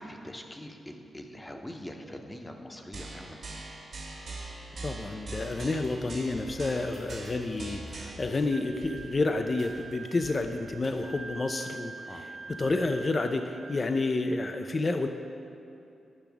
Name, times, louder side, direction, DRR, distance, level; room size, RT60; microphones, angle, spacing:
voice 1, 0.1-3.4 12.1-12.2, left 1 dB, 20° left, 4 dB, 0.7 m, -43 dB
sound 1, 2.9-8.3, right 2 dB, 65° right, 1.5 m, -42 dB
voice 2, 4.8-15.1, left 3 dB, 40° left, 6 dB, 0.3 m, -30 dB
sound 2, 5.3-11.3, right 2 dB, 80° right, 1.2 m, -51 dB
Wind instrument woodwind instrument, 8.5-14.3, right 3 dB, 40° right, 0.8 m, -45 dB
8.7 x 5.8 x 3.4 m, 2.7 s
cardioid pair, 55°, 0 cm